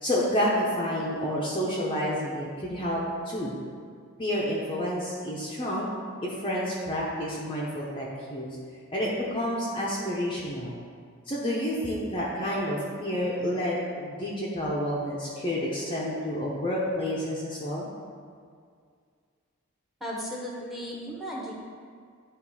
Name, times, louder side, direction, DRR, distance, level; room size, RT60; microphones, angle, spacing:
voice 1, 0.0-3.0 3.3-3.5 4.2-5.9 6.2-8.6 8.9-10.8 11.3-17.9, equal, 25° left, -5 dB, 0.8 m, -29 dB
voice 2, 20.0-21.5, equal, ahead, -4 dB, 1.1 m, -35 dB
9.6 x 3.2 x 4.8 m, 2.1 s
head